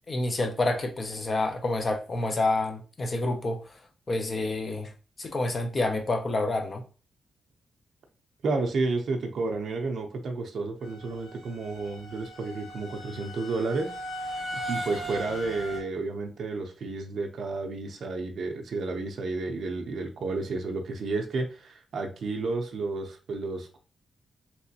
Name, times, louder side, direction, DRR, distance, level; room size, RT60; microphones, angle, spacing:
voice 1, 0.1-3.6 4.1-4.9 5.2-6.8, left 2 dB, 30° left, 0.5 m, -28 dB
voice 2, 8.4-13.9 14.7-23.8, right 3 dB, 55° right, 0.5 m, -31 dB
sound 1, 10.8-15.8, equal, 50° left, 1.6 m, -38 dB
3.3 x 2.9 x 2.7 m
wide cardioid pair, 180°, 0 cm